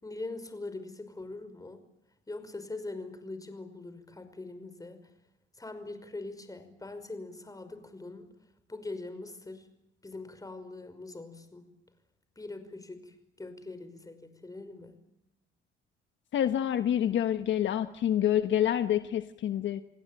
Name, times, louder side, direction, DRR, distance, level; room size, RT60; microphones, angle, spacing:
voice 1, 0.0-1.8 2.3-5.1 5.6-8.3 8.7-9.7 10.0-11.7 12.4-15.0, left 2 dB, 15° left, 9 dB, 5.5 m, -42 dB
voice 2, 16.3-19.8, left 10 dB, 70° left, 9 dB, 1.2 m, -27 dB
29.5 x 17.5 x 9.1 m, 0.85 s
cardioid pair, 90°, 20 cm